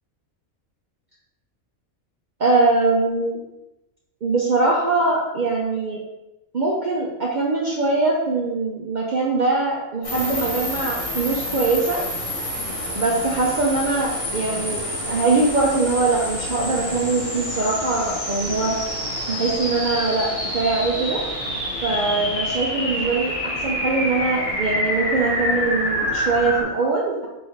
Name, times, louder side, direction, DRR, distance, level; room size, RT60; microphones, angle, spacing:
voice 1, 2.4-3.4 4.2-6.0 6.5-12.0 12.9-18.8 19.3-20.3 20.5-21.2 21.8-27.3, right 3 dB, 60° right, -3 dB, 0.5 m, -22 dB
sound 1, 10.0-26.6, left 1 dB, 25° left, 0.9 m, -27 dB
4.0 x 2.6 x 4.4 m, 0.95 s
omnidirectional pair, 1.5 m